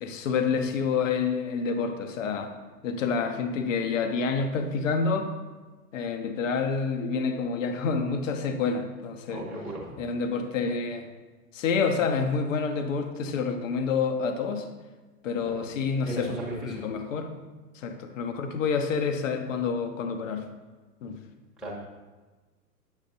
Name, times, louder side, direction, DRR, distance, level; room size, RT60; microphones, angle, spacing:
voice 1, 0.0-2.5 2.8-5.3 5.9-9.4 10.0-11.1 11.5-14.7 15.2-16.3 16.6-17.3 17.7-20.5 21.0-21.2, left 5 dB, 50° left, 7 dB, 0.9 m, -28 dB
voice 2, 9.3-10.1 15.4-15.5 16.0-16.8 21.6-21.7, right 1 dB, ahead, -6 dB, 1.2 m, -36 dB
8.9 x 7.2 x 2.7 m, 1.3 s
figure-of-eight pair, 105°, 48 cm